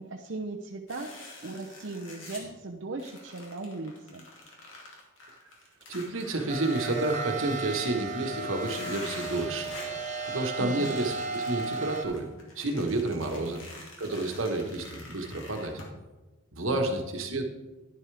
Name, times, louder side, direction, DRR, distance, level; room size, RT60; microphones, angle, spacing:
voice 1, 0.0-4.3 10.6-11.0 13.4-13.6 16.7-17.0, right 2 dB, 65° right, 1 dB, 0.7 m, -38 dB
sound 1, 0.9-2.5 3.0-7.9 8.5-10.0 10.7-15.9, left 2 dB, 75° left, 2.3 m, -47 dB
voice 2, 5.9-9.8 10.2-12.3 12.5-13.6 14.0-15.8 16.5-17.4, right 2 dB, 80° right, 4 dB, 1.4 m, -30 dB
sound 2, 6.5-12.1, right 3 dB, 35° right, 1.1 m, -35 dB
11.0 x 10.5 x 3.4 m, 1.1 s
head